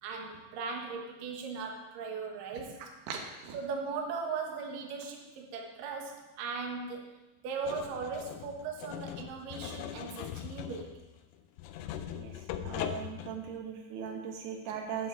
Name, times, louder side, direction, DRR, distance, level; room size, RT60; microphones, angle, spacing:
voice 1, 0.0-2.8 3.5-7.1 7.4-11.0, right 5 dB, 65° right, 1 dB, 2.6 m, -38 dB
voice 2, 3.1-3.6 12.1-12.3 12.6-15.1, right 7 dB, 85° right, 2 dB, 3.1 m, -39 dB
sound 1, 7.6-13.6, left 10 dB, 90° left, 2.7 m, -40 dB
9.2 x 5.7 x 7.5 m, 1.1 s
omnidirectional pair, 4.6 m